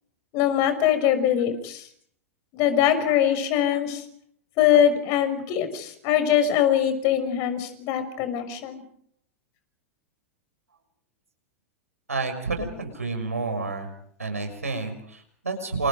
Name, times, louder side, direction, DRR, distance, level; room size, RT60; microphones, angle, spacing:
voice 1, 0.3-1.9 2.5-4.0 4.6-8.8, left 10 dB, 45° left, 10 dB, 6.2 m, -22 dB
voice 2, 12.1-13.9 14.2-15.9, right 3 dB, 85° right, 5 dB, 6.7 m, -29 dB
29.0 x 29.0 x 5.2 m, 0.65 s
figure-of-eight pair, 95°, 8 cm